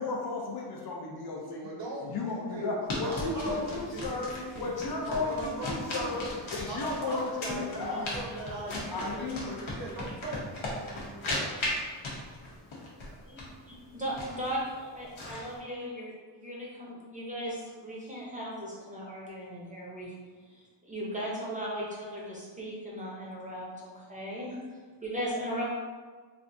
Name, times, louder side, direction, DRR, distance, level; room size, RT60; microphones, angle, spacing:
voice 1, 0.0-1.7 2.0-8.1 8.9-9.5, left 3 dB, 55° left, -2 dB, 0.5 m, -34 dB
voice 2, 1.6-6.2 6.5-9.1 9.5-10.4, right 2 dB, 65° right, -3 dB, 0.8 m, -40 dB
sound 1, 2.9-15.6, left 1 dB, 85° left, 0.9 m, -38 dB
voice 3, 7.8-9.6 10.5-12.2, equal, 25° left, -7 dB, 0.8 m, -47 dB
voice 4, 13.9-20.1 20.5-25.8, equal, 15° right, -6 dB, 0.6 m, -37 dB
3.3 x 2.5 x 2.6 m, 1.5 s
wide cardioid pair, 165°, 47 cm